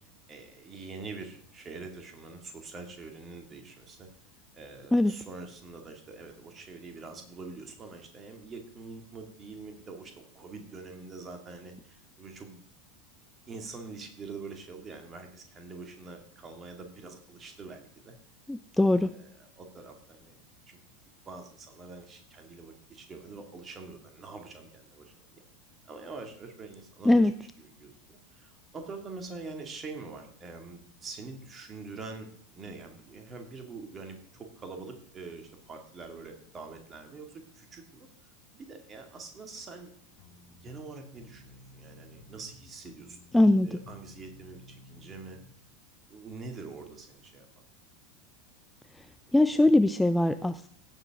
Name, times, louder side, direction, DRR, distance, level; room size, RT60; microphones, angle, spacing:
voice 1, 0.3-4.1 4.5-12.7 13.5-18.2 18.9-20.4 20.7-20.8 21.2-25.1 25.9-27.3 27.6-38.1 38.5-39.9 40.5-43.2 43.6-45.4 46.1-47.5, right 4 dB, 25° right, 5 dB, 2.3 m, -45 dB
voice 2, 18.5-19.1 27.1-27.3 43.3-43.7 49.3-50.7, left 2 dB, 5° left, 12 dB, 0.4 m, -21 dB
sound 1, 40.2-45.5, left 1 dB, 50° left, 1.9 m, -53 dB
16.0 x 7.3 x 3.7 m, 0.63 s
figure-of-eight pair, 80°, 0 cm